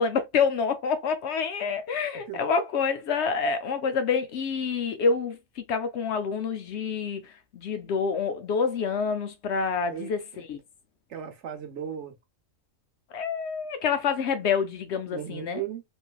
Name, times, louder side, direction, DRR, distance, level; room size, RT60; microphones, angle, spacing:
voice 1, 0.0-7.2 7.5-10.6 13.1-15.6, left 5 dB, 65° left, 0.8 m, -27 dB
voice 2, 9.9-10.4 11.1-12.1 15.1-15.8, right 9 dB, 65° right, 1.0 m, -36 dB
3.1 x 2.6 x 2.2 m
omnidirectional pair, 1.3 m